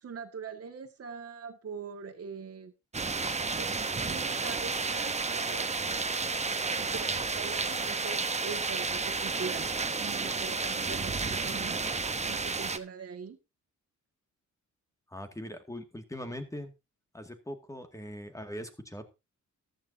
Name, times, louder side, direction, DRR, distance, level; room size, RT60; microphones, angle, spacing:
voice 1, 0.0-2.7 3.6-3.7 4.1-5.7 6.8-9.7 10.0-11.8 12.3-13.4, right 6 dB, 50° right, 5 dB, 2.0 m, -42 dB
sound 1, 2.9-12.8, right 4 dB, 20° right, 0.9 m, -31 dB
voice 2, 15.1-16.7 17.1-19.1, equal, 10° left, 6 dB, 2.1 m, -41 dB
14.5 x 11.5 x 2.8 m, 0.26 s
cardioid pair, 105°, 30 cm